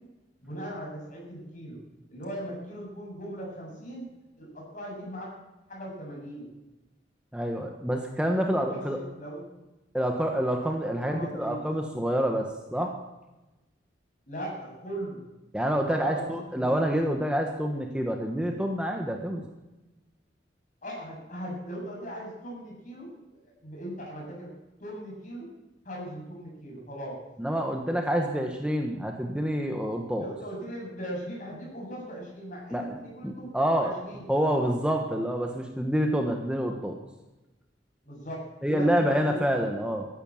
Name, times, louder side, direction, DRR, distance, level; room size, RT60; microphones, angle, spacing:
voice 1, 0.4-1.8 2.1-4.1 4.4-5.3 5.7-6.5 8.2-9.5 11.0-11.7 14.3-15.2 15.9-16.8 20.8-24.5 24.8-25.5 25.8-27.2 30.1-34.3 38.0-39.4, right 1 dB, 45° left, -2 dB, 7.8 m, -39 dB
voice 2, 7.3-9.0 9.9-12.9 15.5-19.5 27.4-30.3 32.7-32.9 33.2-33.9 34.3-37.0 38.6-40.1, equal, 5° right, 3 dB, 1.4 m, -27 dB
15.0 x 11.5 x 7.3 m, 1.0 s
head